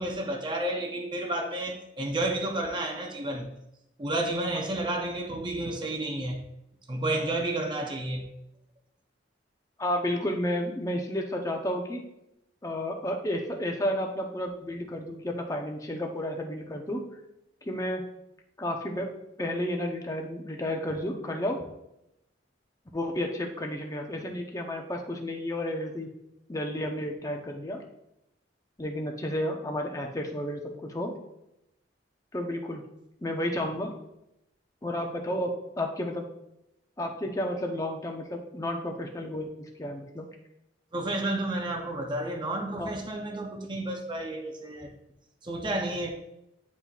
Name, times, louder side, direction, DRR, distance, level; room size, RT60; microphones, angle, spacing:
voice 1, 0.0-3.5 4.0-6.4 6.9-8.2 40.9-44.9 45.4-46.1, right 1 dB, 25° right, 2 dB, 0.6 m, -31 dB
voice 2, 9.8-12.0 12.6-17.0 17.6-18.0 18.6-19.1 19.4-21.6 22.9-26.1 26.5-27.8 28.8-31.1 32.3-32.8 33.2-33.9 34.8-35.5 35.8-36.3 37.0-40.3 42.8-42.9, left 1 dB, 20° left, 2 dB, 0.7 m, -31 dB
9.6 x 4.2 x 2.4 m, 0.84 s
head